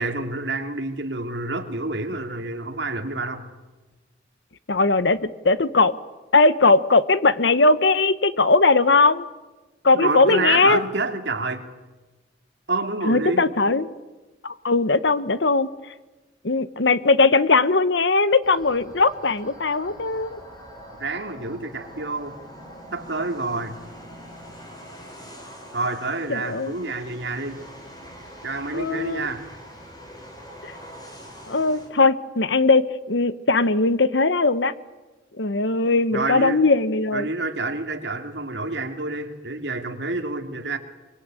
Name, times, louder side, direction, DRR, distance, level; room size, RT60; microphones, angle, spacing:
voice 1, 0.0-3.5 9.9-11.7 12.7-13.5 21.0-22.4 22.9-23.8 25.7-27.6 28.4-29.5 36.1-36.6 37.1-40.8, right 3 dB, 70° right, 5 dB, 2.6 m, -28 dB
voice 2, 4.7-5.9 6.3-9.2 9.8-10.8 13.0-13.9 14.4-15.7 16.4-20.4 26.3-26.9 28.7-29.3 30.6-30.7 31.5-34.7 35.4-37.3, left 3 dB, 70° left, 15 dB, 1.1 m, -19 dB
sound 1, 18.4-31.9, equal, 20° left, 5.3 m, -43 dB
24.5 x 23.0 x 9.0 m, 1.2 s
head